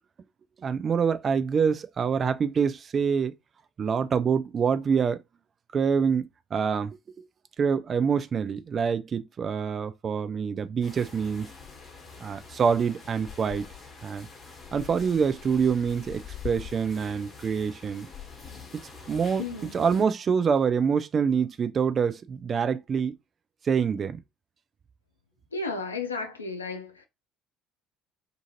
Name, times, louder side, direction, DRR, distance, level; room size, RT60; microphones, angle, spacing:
voice 1, 0.6-3.3 3.8-5.2 5.7-7.3 7.6-11.5 12.2-13.7 14.0-14.3 14.7-18.1 19.1-19.5 19.7-23.2 23.6-24.2, right 6 dB, 35° right, 0.4 m, -26 dB
sound 1, 10.8-20.0, left 6 dB, 35° left, 1.1 m, -44 dB
voice 2, 19.4-19.8 25.5-27.0, left 3 dB, 85° left, 0.4 m, -33 dB
2.5 x 2.4 x 2.9 m
figure-of-eight pair, 55°, 0 cm